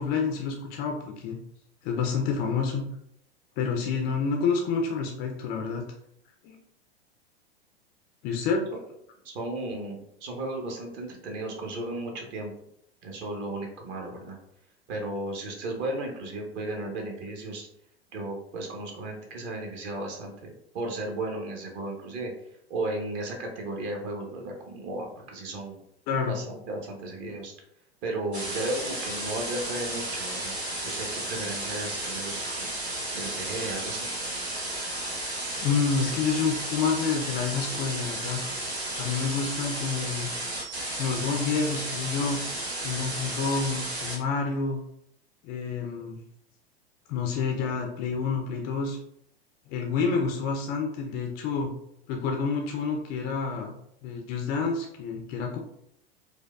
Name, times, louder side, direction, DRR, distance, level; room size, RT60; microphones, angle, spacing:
voice 1, 0.0-1.4 1.8-2.9 3.6-5.8 6.4-6.6 8.2-8.6 26.1-26.4 35.6-38.4 39.0-40.3 41.0-42.4 42.8-44.8 45.4-46.2 47.1-49.0 49.7-51.7 52.1-53.7 54.0-55.6, left 5 dB, 30° left, 2 dB, 0.4 m, -28 dB
voice 2, 9.2-12.5 13.0-14.4 14.9-17.7 18.1-22.3 22.7-25.8 26.2-27.5 28.0-30.5 30.8-32.8 33.1-34.1, right 2 dB, 35° right, 1 dB, 0.8 m, -34 dB
sound 1, 28.3-44.2, right 1 dB, 90° right, 1.0 m, -33 dB
4.5 x 2.2 x 2.3 m, 0.75 s
figure-of-eight pair, 95°, 31 cm